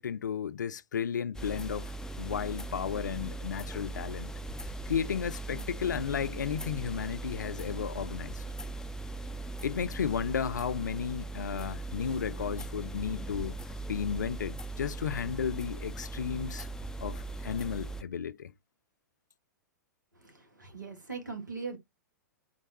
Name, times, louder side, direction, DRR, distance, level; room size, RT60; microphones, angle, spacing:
voice 1, 0.0-1.9 2.2-4.3 4.9-8.4 9.6-13.6 13.9-16.7 17.0-18.5, left 7 dB, 75° left, 0.4 m, -33 dB
sound 1, 1.3-18.0, right 2 dB, 5° left, 0.4 m, -39 dB
voice 2, 20.1-21.8, right 4 dB, 85° right, 1.7 m, -40 dB
4.2 x 3.3 x 2.8 m
figure-of-eight pair, 105°, 10 cm